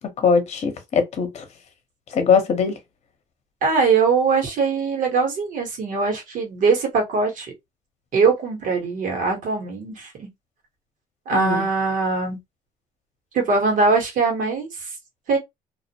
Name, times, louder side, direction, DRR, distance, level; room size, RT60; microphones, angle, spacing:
voice 1, 0.2-1.4 2.1-2.8 11.3-11.6, left 6 dB, 45° left, 0.8 m, -21 dB
voice 2, 3.6-7.5 8.1-10.3 11.3-12.4 13.3-14.9 15.3-15.4, right 4 dB, 65° right, 1.1 m, -21 dB
2.3 x 2.1 x 2.8 m
cardioid pair, 90°, 15 cm